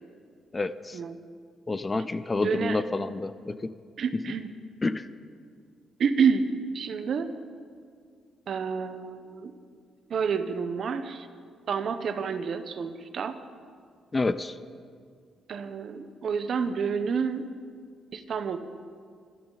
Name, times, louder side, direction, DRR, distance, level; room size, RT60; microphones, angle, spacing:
voice 1, 0.5-1.0 1.7-3.7 4.8-5.1 14.1-14.6, left 3 dB, 20° left, 14 dB, 0.4 m, -28 dB
voice 2, 2.4-2.8 4.0-4.5 6.0-6.5 6.7-7.4 8.5-9.5 10.1-11.3 11.7-13.4 15.5-17.5 18.1-18.6, right 6 dB, 50° right, 10 dB, 0.9 m, -29 dB
24.5 x 12.0 x 4.0 m, 2.1 s
cardioid pair, 145°, 0 cm